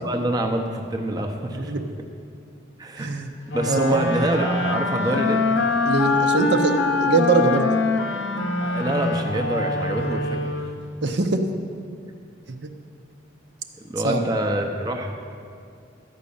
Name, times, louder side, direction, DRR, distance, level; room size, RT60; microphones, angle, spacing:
voice 1, 0.0-1.7 2.8-3.3 3.5-5.4 8.6-10.7 13.8-15.1, right 1 dB, 20° right, 3 dB, 0.7 m, -26 dB
voice 2, 1.5-1.9 3.0-3.3 3.7-4.0 5.8-7.7 11.0-11.4 12.5-12.7 14.0-14.3, right 3 dB, 65° right, 6 dB, 0.7 m, -22 dB
sound 1, 3.5-10.9, left 3 dB, 70° left, 0.7 m, -24 dB
12.5 x 5.2 x 8.5 m, 2.3 s
head